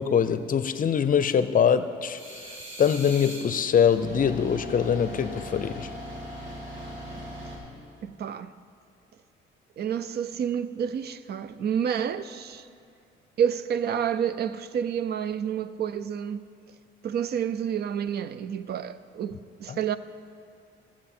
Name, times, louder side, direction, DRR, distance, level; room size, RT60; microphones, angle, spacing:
voice 1, 0.0-2.4 2.8-5.9 19.7-19.8, left 7 dB, 45° left, 0.6 m, -23 dB
sound 1, 2.2-3.4 3.8-7.6, right 1 dB, 75° right, 2.3 m, -39 dB
voice 2, 8.0-8.5 9.8-12.7 13.4-16.4 17.0-20.0, right 8 dB, 55° right, 0.4 m, -29 dB
16.0 x 7.4 x 4.4 m
cardioid pair, 90°, 20 cm